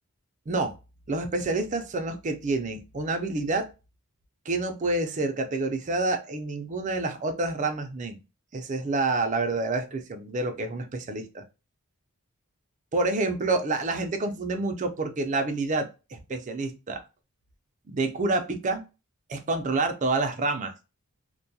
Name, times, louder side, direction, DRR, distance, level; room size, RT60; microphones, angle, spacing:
voice 1, 1.1-3.7 4.5-8.2 8.5-11.4 12.9-17.0 17.9-18.8 19.3-20.7, right 2 dB, 35° right, 6 dB, 0.4 m, -28 dB
2.2 x 2.2 x 2.6 m, 0.29 s
head